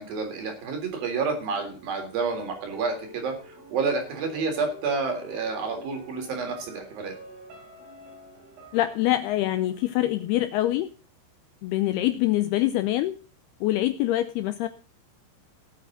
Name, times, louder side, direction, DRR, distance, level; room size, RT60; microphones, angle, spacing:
voice 1, 0.0-7.1, right 4 dB, 50° right, 5 dB, 5.0 m, -29 dB
sound 1, 1.4-10.4 10.7-10.8, right 2 dB, 80° right, 6.2 m, -47 dB
voice 2, 8.7-10.9 11.6-13.2 13.6-14.7, left 15 dB, 90° left, 10 dB, 2.2 m, -24 dB
18.5 x 8.5 x 3.8 m, 0.36 s
omnidirectional pair, 5.4 m